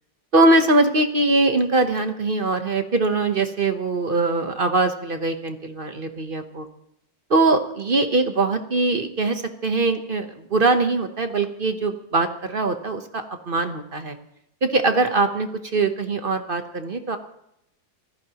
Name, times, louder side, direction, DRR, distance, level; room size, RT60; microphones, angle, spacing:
voice 1, 0.3-6.7 7.3-14.2 14.6-17.2, right 2 dB, 40° right, 7 dB, 1.0 m, -22 dB
25.5 x 15.0 x 3.0 m, 0.80 s
omnidirectional pair, 1.7 m